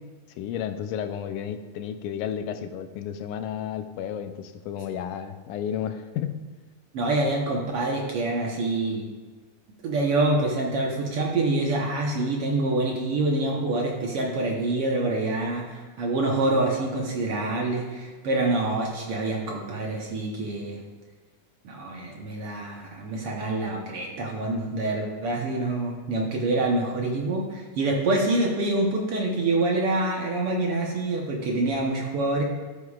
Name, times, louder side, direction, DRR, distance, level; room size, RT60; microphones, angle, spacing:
voice 1, 0.3-6.4, left 9 dB, 85° left, 9 dB, 2.1 m, -32 dB
voice 2, 6.9-9.1 9.8-20.8 21.6-32.4, right 2 dB, 60° right, -1 dB, 1.6 m, -26 dB
13.5 x 9.8 x 2.4 m, 1.3 s
omnidirectional pair, 3.6 m